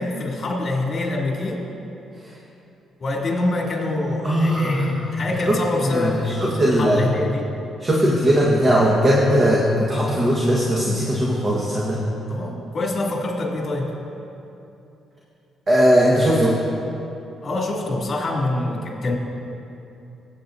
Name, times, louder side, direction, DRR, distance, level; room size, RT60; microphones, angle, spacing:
voice 1, 0.0-1.6 3.0-7.5 12.3-13.9 17.4-19.2, left 2 dB, 45° left, -2 dB, 2.4 m, -25 dB
voice 2, 4.2-5.1 5.5-5.6 5.8-7.0 7.8-12.0 15.7-16.5, equal, 30° right, -4 dB, 1.3 m, -19 dB
19.0 x 8.4 x 2.6 m, 2.8 s
cardioid pair, 90°, 0 cm